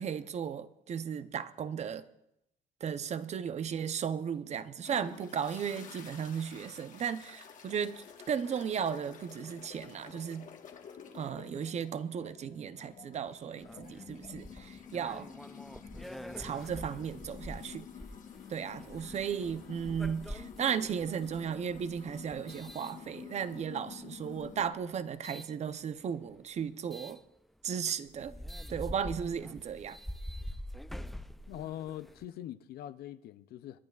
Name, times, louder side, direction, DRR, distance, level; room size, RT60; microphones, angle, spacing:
voice 1, 0.0-2.1 2.8-10.5 11.1-15.3 16.4-17.9 18.5-27.2 27.6-28.3 28.7-30.0, right 7 dB, 40° right, 0.7 m, -35 dB
sound 1, 4.8-24.7, left 7 dB, 50° left, 1.4 m, -50 dB
sound 2, 13.6-23.6 24.3-25.5 26.9-27.2 27.7-27.8 28.1-32.3, equal, ahead, 0.3 m, -46 dB
voice 2, 31.5-33.8, left 12 dB, 65° left, 0.5 m, -43 dB
26.5 x 10.5 x 2.4 m
cardioid pair, 110°, 17 cm